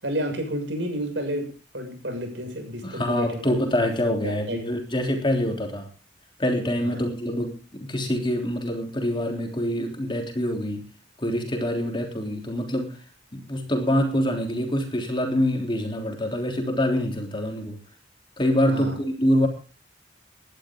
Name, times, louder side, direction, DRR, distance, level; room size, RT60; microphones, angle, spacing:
voice 1, 0.0-3.4 4.2-4.6 6.8-7.0 18.7-19.0, equal, 70° right, 4 dB, 6.5 m, -31 dB
voice 2, 2.8-5.9 6.4-10.9 11.2-13.0 13.3-17.8 18.4-19.5, equal, 25° left, 3 dB, 3.4 m, -25 dB
19.5 x 11.5 x 3.8 m, 0.35 s
head